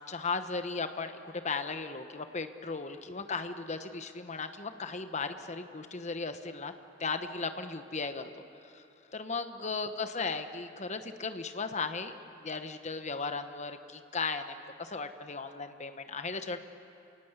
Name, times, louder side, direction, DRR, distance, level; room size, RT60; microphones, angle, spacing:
voice 1, 0.1-6.7 7.0-8.3 8.6-8.8 9.1-12.2 12.4-16.6, left 4 dB, 35° left, 8 dB, 1.1 m, -36 dB
28.5 x 19.0 x 8.1 m, 2.7 s
head